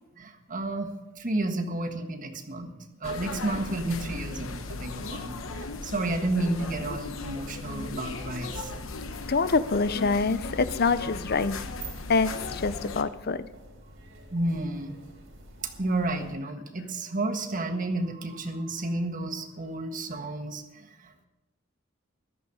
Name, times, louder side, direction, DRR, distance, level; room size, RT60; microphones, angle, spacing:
voice 1, 0.2-2.7 3.0-8.7 14.3-15.0 15.6-21.3, right 2 dB, 40° right, 5 dB, 1.5 m, -31 dB
sound 1, 3.0-13.0, left 3 dB, 75° left, 1.1 m, -37 dB
sound 2, 8.0-16.3, right 3 dB, 85° right, 4.0 m, -48 dB
voice 2, 9.3-11.6 12.1-13.5, left 4 dB, 50° left, 14 dB, 0.6 m, -25 dB
14.5 x 12.0 x 4.9 m, 0.99 s
head